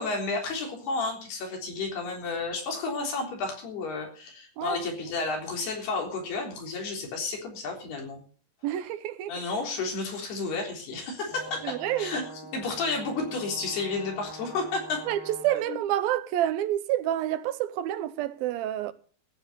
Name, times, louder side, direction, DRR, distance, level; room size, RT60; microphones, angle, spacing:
voice 1, 0.0-8.2 9.3-12.2 12.5-15.0 15.7-15.8, left 3 dB, 70° left, 5.6 m, -32 dB
voice 2, 8.6-9.3 11.6-12.2 15.1-18.9, right 12 dB, 75° right, 2.4 m, -28 dB
Brass instrument, 11.3-15.7, right 1 dB, 5° left, 2.8 m, -44 dB
15.0 x 9.3 x 6.8 m
omnidirectional pair, 4.8 m